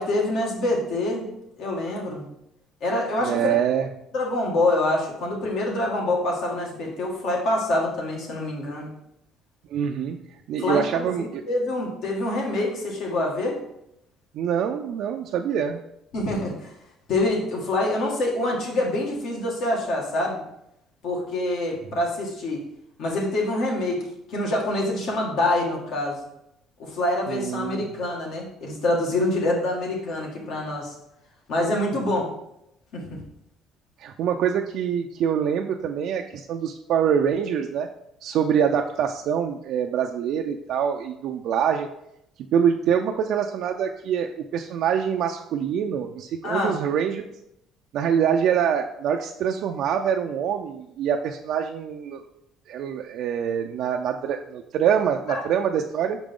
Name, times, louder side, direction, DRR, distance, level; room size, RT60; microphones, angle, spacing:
voice 1, 0.0-2.3 2.8-3.6 4.1-8.9 10.6-13.6 16.1-16.7 17.1-20.4 21.0-22.6 23.0-24.0 24.3-26.2 26.8-30.9 31.5-32.3 32.9-33.2 46.4-46.7 55.3-55.4, left 1 dB, 65° left, -1 dB, 1.8 m, -26 dB
voice 2, 3.2-3.9 9.7-10.2 10.5-11.4 14.3-15.8 27.3-27.9 31.9-32.1 34.0-37.9 38.2-41.9 42.5-47.2 47.9-52.2 52.7-56.2, right 8 dB, 65° right, 3 dB, 0.4 m, -25 dB
5.8 x 5.0 x 3.7 m, 0.79 s
cardioid pair, 135°, 0 cm